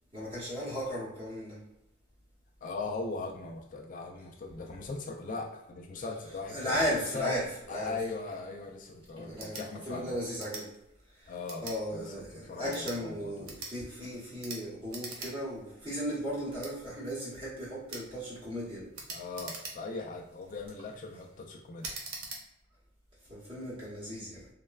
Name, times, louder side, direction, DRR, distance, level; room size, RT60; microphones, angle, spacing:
voice 1, 0.1-1.6 6.0-6.1 6.5-8.0 9.2-10.7 11.1-11.3 11.6-18.9 23.3-24.5, equal, 25° right, -8 dB, 0.8 m, -36 dB
voice 2, 2.6-6.8 7.1-7.3 7.7-10.1 11.3-11.6 11.9-13.5 19.1-21.9, left 3 dB, 40° left, 0 dB, 0.3 m, -39 dB
sound 1, 9.4-9.7 10.4-10.7 11.5-11.8 12.6-13.0 13.4-13.7 14.4-14.6 14.9-15.3 15.7-15.8 16.6-16.7 17.9-18.1 18.9-20.0 20.6-20.9 21.8-22.4, right 3 dB, 80° right, 0.6 m, -42 dB
3.1 x 2.1 x 2.3 m, 0.87 s
head